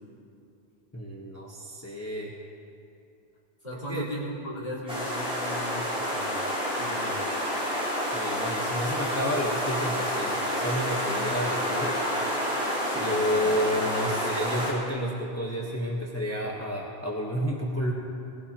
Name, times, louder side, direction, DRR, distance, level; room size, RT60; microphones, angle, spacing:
voice 1, 0.9-2.3 3.7-4.1 8.1-12.0 12.9-17.9, equal, 15° left, -3 dB, 1.1 m, -30 dB
voice 2, 3.6-6.4 6.8-7.2 12.8-13.5, equal, 40° left, -6 dB, 4.5 m, -37 dB
sound 1, 4.9-14.7, equal, 5° right, 3.9 m, -29 dB
21.0 x 17.0 x 2.9 m, 2.6 s
omnidirectional pair, 1.1 m